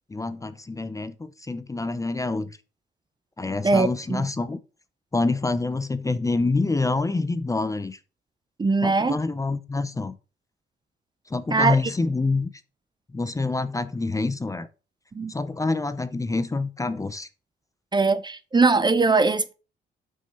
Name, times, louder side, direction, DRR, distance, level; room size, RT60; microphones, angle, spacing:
voice 1, 0.1-2.5 3.4-4.6 5.1-8.0 8.8-10.2 11.3-12.5 13.1-14.7 15.3-17.3, left 3 dB, 15° left, 0.6 m, -26 dB
voice 2, 3.6-4.3 8.6-9.2 11.5-11.8 15.1-15.3 17.9-19.5, right 3 dB, 20° right, 0.6 m, -21 dB
6.2 x 5.6 x 5.4 m
cardioid pair, 90°, 20 cm